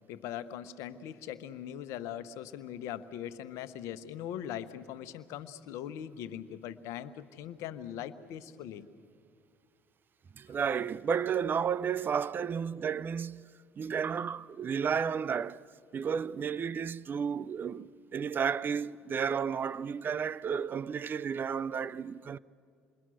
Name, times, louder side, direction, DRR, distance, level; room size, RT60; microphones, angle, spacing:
voice 1, 0.1-8.9 10.5-10.6, left 10 dB, 75° left, 1.1 m, -41 dB
voice 2, 10.4-13.5 13.8-15.6 15.9-22.4, right 7 dB, 40° right, 0.5 m, -32 dB
28.0 x 22.5 x 6.4 m
supercardioid pair, 75°, 5 cm